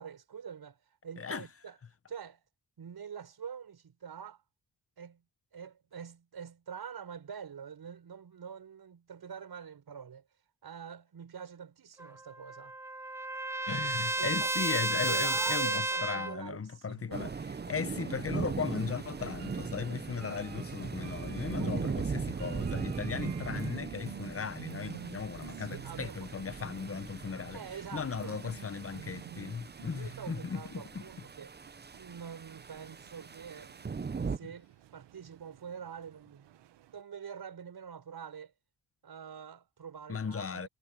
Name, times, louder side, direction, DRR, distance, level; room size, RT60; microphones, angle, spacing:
voice 1, 0.0-1.8 2.1-2.4 2.8-4.4 5.0-5.2 5.5-10.2 10.6-12.8 13.7-13.8 14.2-14.6 15.1-17.4 21.5-22.0 22.3-22.6 25.6-26.3 27.5-28.4 29.9-31.5 31.9-33.7 34.3-38.5 39.0-40.7, right 7 dB, 65° right, 5.5 m, -45 dB
Trumpet, 12.0-16.4, right 2 dB, 5° right, 0.3 m, -32 dB
voice 2, 13.7-27.6 27.9-31.0 40.1-40.7, left 5 dB, 35° left, 1.2 m, -37 dB
sound 1, 17.1-34.4, right 5 dB, 25° right, 0.8 m, -39 dB
sound 2, 19.1-24.3 24.6-25.2 25.4-26.1 28.1-37.0, right 12 dB, 85° right, 1.4 m, -51 dB
supercardioid pair, 55°, 41 cm